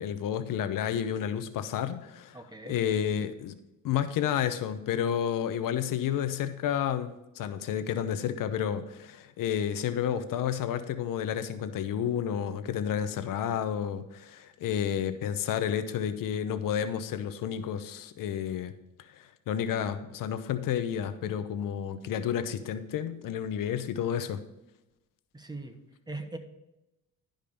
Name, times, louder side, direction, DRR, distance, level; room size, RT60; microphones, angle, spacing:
voice 1, 0.0-3.5 3.8-18.7 19.1-24.4, left 9 dB, 75° left, 10 dB, 0.8 m, -31 dB
voice 2, 2.3-2.8 25.3-25.8 26.1-26.4, right 2 dB, 10° right, 7 dB, 1.1 m, -40 dB
12.0 x 5.2 x 5.3 m, 0.94 s
cardioid pair, 100°, 33 cm